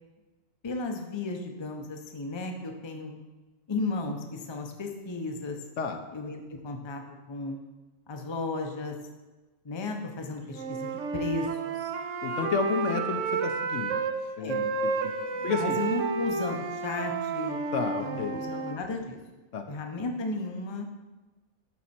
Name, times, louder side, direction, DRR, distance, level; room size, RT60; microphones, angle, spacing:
voice 1, 0.6-3.2 3.7-5.6 6.1-7.0 7.3-7.6 8.1-8.9 9.6-11.9 14.4-14.7 15.3-17.6 18.0-19.2 19.7-20.9, left 3 dB, 25° left, 3 dB, 0.6 m, -34 dB
Wind instrument woodwind instrument, 10.5-14.1 14.5-18.8, right 4 dB, 70° right, 1.0 m, -31 dB
voice 2, 12.2-14.0 14.4-15.1 15.4-15.8 17.7-18.4 19.5-19.7, left 6 dB, 70° left, 5 dB, 1.0 m, -31 dB
11.0 x 4.2 x 4.3 m, 1.2 s
omnidirectional pair, 1.4 m